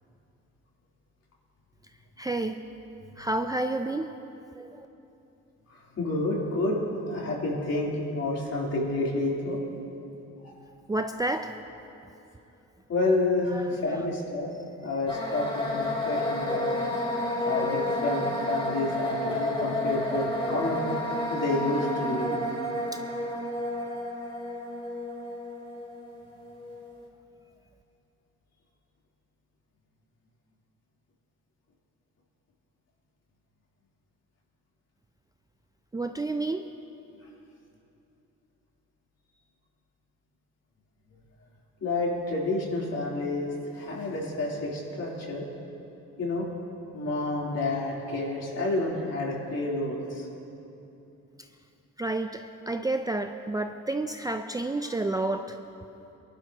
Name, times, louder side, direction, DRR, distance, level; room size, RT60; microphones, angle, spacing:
voice 1, 2.2-2.6 3.2-4.1 4.5-4.9 10.9-11.5 13.5-14.1 17.4-17.6 19.6-20.2 35.9-36.7 52.0-55.6, right 2 dB, 10° right, 7 dB, 0.4 m, -30 dB
voice 2, 5.7-6.8 7.1-9.6 10.4-10.5 12.9-14.5 14.8-16.7 17.4-21.0 21.3-22.3 41.8-45.4 46.2-46.4 46.9-50.3, left 2 dB, 55° left, -4 dB, 3.6 m, -29 dB
sound 1, 15.1-26.9, left 1 dB, 20° left, 2.8 m, -31 dB
22.0 x 11.5 x 3.0 m, 2.9 s
cardioid pair, 90°, 30 cm